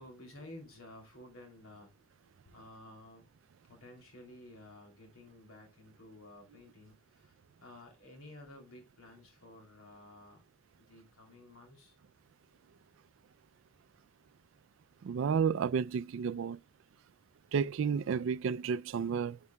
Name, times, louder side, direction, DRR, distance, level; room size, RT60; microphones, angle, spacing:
voice 1, 0.0-1.9 2.2-3.2 3.7-10.4 10.8-11.9, left 1 dB, 75° left, 2.9 m, -53 dB
voice 2, 15.0-16.6 17.5-19.4, right 6 dB, 65° right, 0.3 m, -31 dB
11.0 x 5.9 x 2.2 m
head